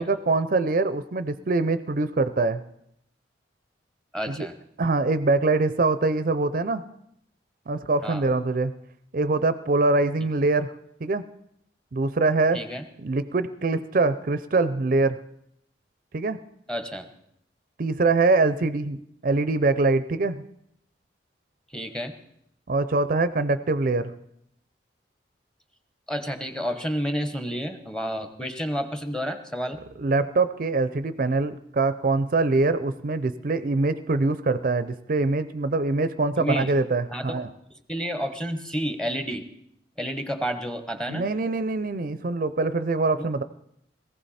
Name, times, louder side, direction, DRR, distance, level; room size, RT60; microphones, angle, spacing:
voice 1, 0.0-2.6 4.3-4.5 4.8-6.8 7.7-8.7 9.1-10.7 11.0-11.2 11.9-12.6 13.0-15.2 16.1-16.4 17.8-20.4 22.7-24.1 30.0-37.5 41.1-43.4, right 3 dB, 50° right, 13 dB, 0.5 m, -24 dB
voice 2, 4.1-4.6 8.0-8.3 12.5-12.9 16.7-17.1 21.7-22.2 26.1-29.8 36.4-36.7 37.1-37.4 37.9-39.5 40.0-41.3 43.2-43.3, equal, 5° left, 9 dB, 1.0 m, -30 dB
18.5 x 15.0 x 4.2 m, 0.74 s
head